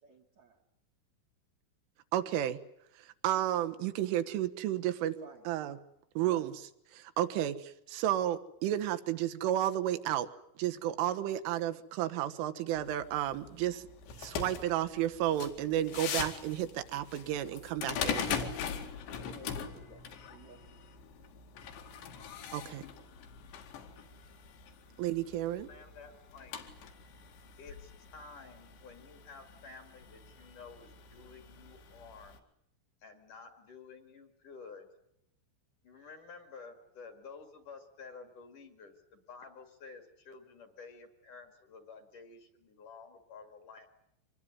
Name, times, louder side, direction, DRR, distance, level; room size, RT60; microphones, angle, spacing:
voice 1, 0.0-0.6 5.1-5.5 6.3-6.5 18.4-18.8 19.1-20.0 20.3-20.8, right 3 dB, 55° right, 2 dB, 2.1 m, -53 dB
voice 2, 2.1-2.6 3.0-5.2 5.5-5.8 6.2-6.5 6.9-10.3 10.6-13.9 14.2-18.4 22.5-22.8 25.0-25.7, right 12 dB, 80° right, 10 dB, 3.6 m, -32 dB
sound 1, 12.8-32.4, left 7 dB, 65° left, 4.2 m, -42 dB
voice 3, 25.7-26.7 27.6-32.4 33.0-34.9 35.8-43.9, left 4 dB, 50° left, 7 dB, 3.0 m, -52 dB
25.5 x 21.0 x 9.7 m, 0.77 s
omnidirectional pair, 5.7 m